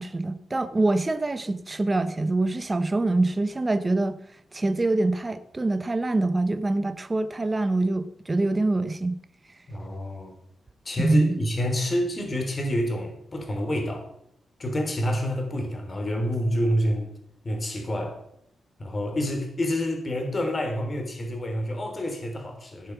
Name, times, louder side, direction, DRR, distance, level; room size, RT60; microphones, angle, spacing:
voice 1, 0.0-4.1 4.5-9.1 11.0-11.3, right 2 dB, 25° right, 10 dB, 1.2 m, -25 dB
voice 2, 9.7-10.4 10.9-14.1 14.6-17.1 17.4-18.2 18.8-22.9, equal, 35° left, 4 dB, 3.7 m, -28 dB
17.0 x 7.5 x 6.1 m, 0.72 s
cardioid pair, 75°, 0 cm